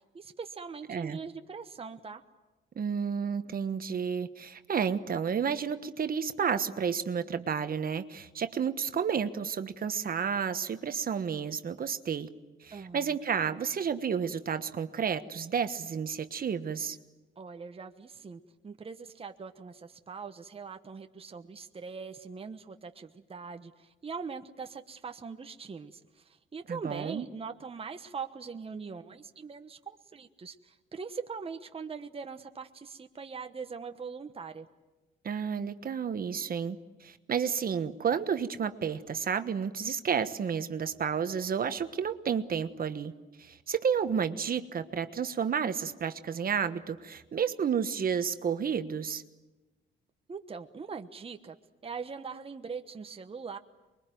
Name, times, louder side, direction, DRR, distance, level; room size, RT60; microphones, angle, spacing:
voice 1, 0.0-2.2 12.7-13.2 17.4-34.7 50.3-51.6 51.8-53.6, right 5 dB, 30° right, 7 dB, 1.2 m, -42 dB
voice 2, 0.9-1.2 2.7-12.3 12.6-17.0 26.7-27.2 35.2-43.1 43.4-49.2, right 7 dB, 45° right, 10 dB, 1.3 m, -31 dB
24.5 x 22.0 x 9.3 m, 1.1 s
cardioid pair, 90°, 20 cm